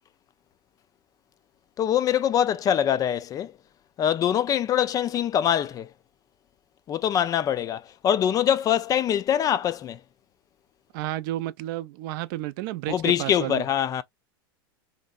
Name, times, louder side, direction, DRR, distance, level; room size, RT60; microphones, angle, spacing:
voice 1, 1.8-3.5 4.0-5.9 6.9-10.0 12.9-14.0, left 10 dB, 30° left, 0.3 m, -24 dB
voice 2, 10.9-13.6, right 15 dB, 60° right, 0.5 m, -31 dB
3.2 x 2.8 x 2.3 m
hypercardioid pair, 105°, 13 cm